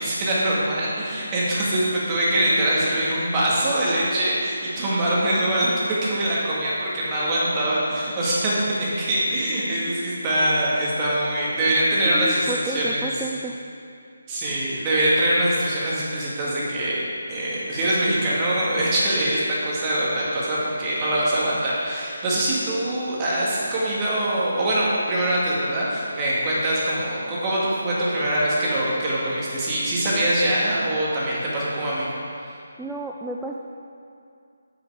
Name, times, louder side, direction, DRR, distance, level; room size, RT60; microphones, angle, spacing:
voice 1, 0.0-13.1 14.3-17.0 17.3-32.1, right 1 dB, 20° right, -7 dB, 2.1 m, -23 dB
voice 2, 12.0-13.7 32.8-33.6, right 2 dB, 5° right, -2 dB, 0.4 m, -31 dB
7.7 x 6.8 x 4.9 m, 2.5 s
figure-of-eight pair, 150°, 0 cm